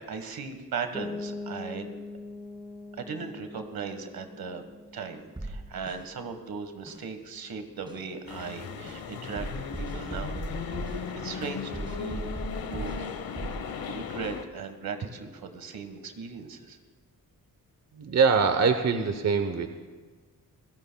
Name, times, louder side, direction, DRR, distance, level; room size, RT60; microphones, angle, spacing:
voice 1, 0.0-1.9 3.0-4.7 4.9-10.4 11.1-13.1 13.8-16.8, right 5 dB, 75° right, 7 dB, 1.5 m, -38 dB
sound 1, 0.9-6.5, left 3 dB, 5° left, 0.7 m, -42 dB
sound 2, 5.4-6.0 6.9-7.0 7.9-8.0 8.9-9.0 9.4-11.0 11.7-13.0 13.4-13.6, right 1 dB, 15° right, 1.8 m, -36 dB
sound 3, 8.3-14.4, left 6 dB, 75° left, 1.1 m, -37 dB
voice 2, 17.9-19.7, right 5 dB, 45° right, 7 dB, 0.9 m, -23 dB
28.0 x 17.0 x 2.3 m, 1.4 s
wide cardioid pair, 105°, 36 cm